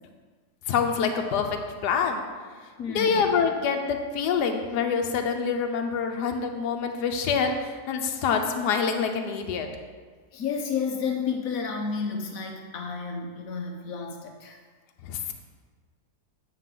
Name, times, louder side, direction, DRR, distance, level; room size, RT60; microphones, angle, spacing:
voice 1, 0.7-2.2 2.9-9.7 15.0-15.3, left 6 dB, 80° left, 4 dB, 1.3 m, -26 dB
voice 2, 2.8-3.4 10.3-14.6, left 5 dB, 60° left, 3 dB, 1.2 m, -31 dB
8.9 x 5.8 x 3.8 m, 1.5 s
omnidirectional pair, 1.7 m